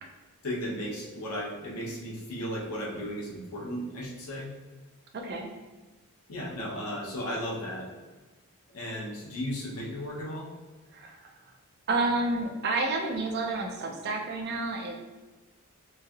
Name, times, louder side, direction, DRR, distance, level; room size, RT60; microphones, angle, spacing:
voice 1, 0.4-4.5 6.3-7.9 8.7-10.5, equal, 80° left, -3 dB, 0.7 m, -35 dB
voice 2, 5.1-5.5 10.9-11.2 11.9-15.0, right 2 dB, 45° right, 2 dB, 0.4 m, -29 dB
3.1 x 2.6 x 2.3 m, 1.2 s
head